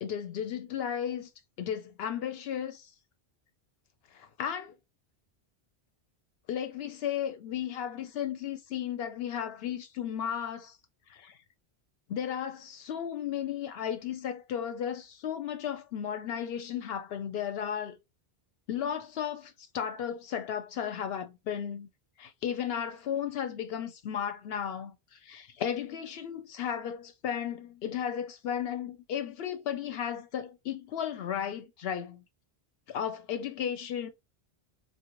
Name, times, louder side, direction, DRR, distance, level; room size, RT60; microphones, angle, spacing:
voice 1, 0.0-1.3 1.6-2.9 4.1-4.7 6.5-10.8 11.1-11.4 12.1-18.0 18.7-21.9 22.2-32.2 32.9-34.1, left 9 dB, 70° left, 0.8 m, -34 dB
3.8 x 2.1 x 3.0 m
omnidirectional pair, 1.1 m